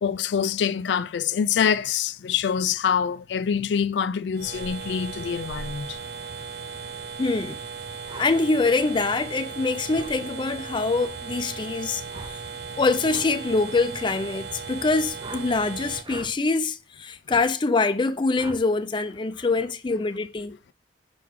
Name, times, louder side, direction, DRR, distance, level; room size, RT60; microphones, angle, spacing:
voice 1, 0.0-6.0, left 7 dB, 90° left, 0.4 m, -25 dB
sound 1, 4.3-16.0, right 5 dB, 65° right, 0.7 m, -37 dB
voice 2, 7.2-7.6 8.2-12.0 12.3-12.4 12.8-20.5, left 3 dB, 25° left, 0.4 m, -24 dB
sound 2, 8.1-8.3 9.9-10.2 12.1-12.4 13.0-13.3 15.2-15.5 16.0-16.3 17.3-17.5 18.4-18.6, right 2 dB, 25° right, 0.6 m, -40 dB
6.0 x 3.7 x 4.6 m
head